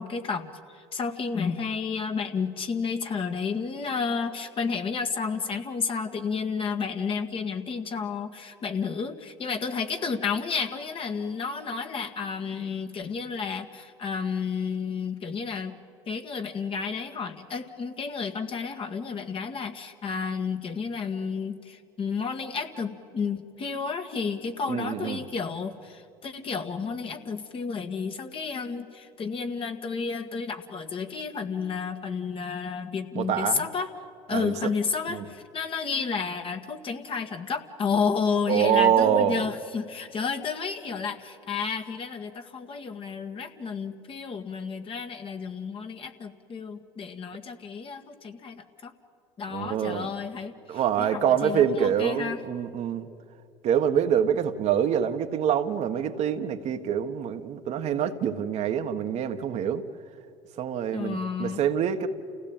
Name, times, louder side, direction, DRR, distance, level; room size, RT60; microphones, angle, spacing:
voice 1, 0.0-15.7 16.1-33.9 34.3-48.9 49.4-52.4 60.9-61.6, left 5 dB, 40° left, 6 dB, 1.9 m, -31 dB
voice 2, 24.7-25.2 33.1-33.6 34.3-34.5 35.1-35.2 38.5-39.4 49.5-50.1 50.7-53.1 53.6-59.8 60.6-62.1, right 9 dB, 55° right, 6 dB, 1.5 m, -25 dB
29.0 x 16.5 x 9.0 m, 2.5 s
hypercardioid pair, 75°, 14 cm